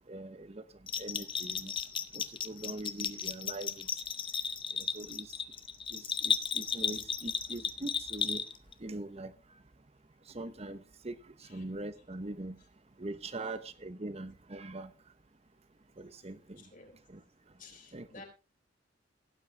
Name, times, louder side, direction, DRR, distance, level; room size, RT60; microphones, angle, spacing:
voice 1, 0.1-0.6 1.0-1.7 2.1-3.9 4.7-5.3 5.9-8.4 8.8-9.3 10.3-11.2 11.5-12.6 13.0-14.9 16.0-16.6 17.1-17.2 17.9-18.1, right 2 dB, 35° right, 1.0 m, -42 dB
Bell, 0.9-8.7, left 7 dB, 30° left, 0.8 m, -34 dB
voice 2, 16.2-17.0 17.6-18.2, left 3 dB, 50° left, 3.9 m, -54 dB
16.5 x 9.1 x 3.4 m
head